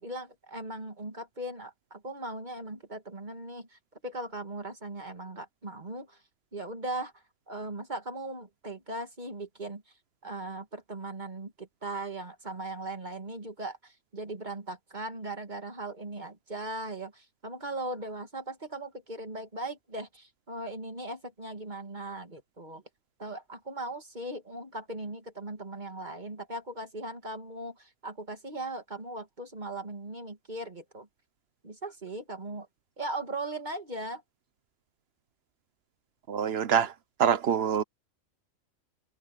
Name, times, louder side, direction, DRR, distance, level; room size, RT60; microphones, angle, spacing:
voice 1, 0.0-6.2 6.5-7.1 7.5-9.8 10.2-22.8 23.2-31.1 31.6-32.7 33.0-34.2, right 2 dB, 35° right, 2.2 m, -38 dB
voice 2, 36.3-36.9 37.2-37.8, right 8 dB, 50° right, 1.1 m, -25 dB
omnidirectional pair, 1.4 m